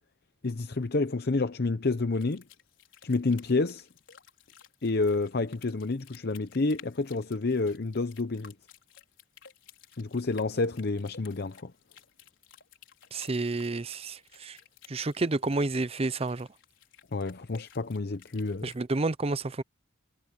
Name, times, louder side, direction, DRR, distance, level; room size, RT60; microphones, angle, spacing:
voice 1, 0.4-2.4 3.0-3.9 4.8-8.5 10.0-11.7 17.1-18.7, left 3 dB, 55° left, 0.8 m, -29 dB
sound 1, 2.1-18.8, left 8 dB, 80° left, 5.1 m, -56 dB
voice 2, 13.1-14.6 14.9-16.5 18.6-19.6, right 3 dB, 30° right, 0.6 m, -30 dB
head